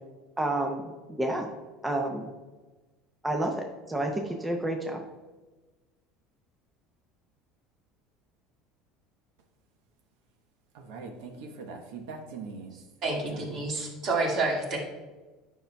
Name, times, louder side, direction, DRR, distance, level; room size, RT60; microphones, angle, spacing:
voice 1, 0.4-0.9 1.2-1.5 1.8-2.2 3.2-5.0, right 1 dB, 10° right, 2 dB, 0.5 m, -29 dB
voice 2, 10.7-12.7 13.1-13.6, right 4 dB, 90° right, 3 dB, 0.9 m, -41 dB
voice 3, 13.0-14.8, right 3 dB, 40° right, -1 dB, 1.8 m, -29 dB
9.3 x 5.7 x 2.2 m, 1.2 s
cardioid pair, 150°, 0 cm